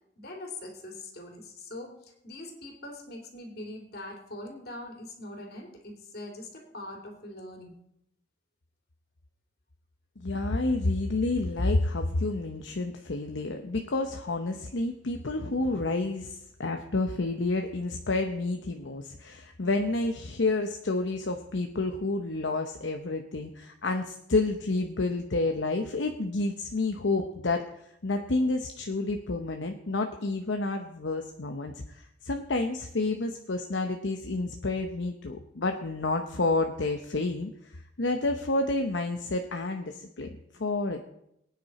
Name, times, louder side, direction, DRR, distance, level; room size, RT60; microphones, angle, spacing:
voice 1, 0.2-7.8, left 1 dB, 55° left, 2 dB, 3.0 m, -42 dB
voice 2, 10.2-27.6 28.0-40.3 40.5-41.0, left 2 dB, 75° left, 5 dB, 0.9 m, -29 dB
22.5 x 9.4 x 4.3 m, 0.80 s
head